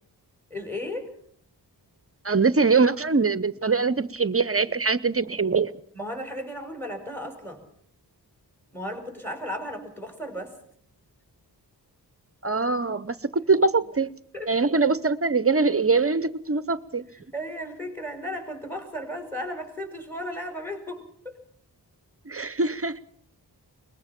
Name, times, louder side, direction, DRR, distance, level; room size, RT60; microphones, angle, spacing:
voice 1, 0.5-1.1 5.9-7.7 8.7-10.6 14.3-14.5 17.3-21.4, equal, 5° left, 5.7 m, -35 dB
voice 2, 2.2-5.7 12.4-14.1 14.5-17.0 22.3-23.0, right 4 dB, 35° right, 0.8 m, -23 dB
22.5 x 21.0 x 5.9 m
wide cardioid pair, 80°, 41 cm